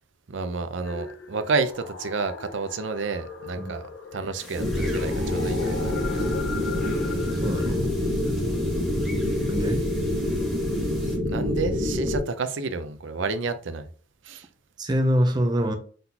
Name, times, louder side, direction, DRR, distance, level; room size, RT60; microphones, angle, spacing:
voice 1, 0.3-6.3 8.6-8.7 11.3-13.9 14.2-14.5, right 4 dB, 75° right, 0.5 m, -30 dB
sound 1, 0.8-7.7, left 5 dB, 80° left, 0.6 m, -40 dB
sound 2, 4.4-11.2, equal, ahead, 1.6 m, -42 dB
sound 3, 4.6-12.2, left 1 dB, 45° right, 1.0 m, -26 dB
voice 2, 7.4-7.9 9.5-9.8 14.8-15.7, equal, 20° right, 0.6 m, -24 dB
3.9 x 3.8 x 2.8 m
head